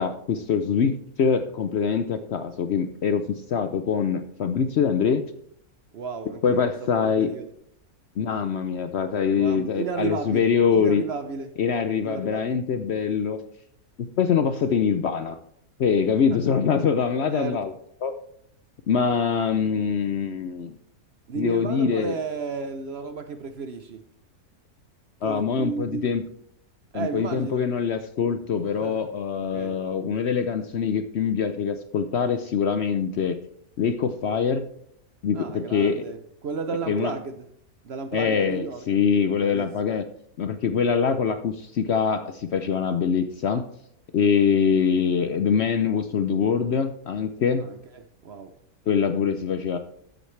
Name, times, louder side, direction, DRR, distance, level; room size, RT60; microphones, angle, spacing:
voice 1, 0.0-5.2 6.4-7.3 8.2-11.0 11.6-13.4 14.0-15.4 15.8-17.7 18.0-18.1 18.9-20.8 21.3-22.2 25.2-26.2 26.9-33.4 33.8-34.6 35.2-36.0 36.9-37.1 38.1-40.0 40.4-43.6 44.1-47.6 48.9-49.8, left 6 dB, 60° left, 0.7 m, -24 dB
voice 2, 5.9-7.5 9.3-11.5 12.0-12.6 16.3-16.4 17.3-17.6 21.3-24.0 25.2-26.1 26.9-27.7 28.7-29.0 29.5-29.8 35.3-37.5 37.8-38.8 39.4-39.7 47.6-48.5, right 5 dB, 55° right, 0.8 m, -33 dB
13.0 x 8.0 x 3.2 m
omnidirectional pair, 1.6 m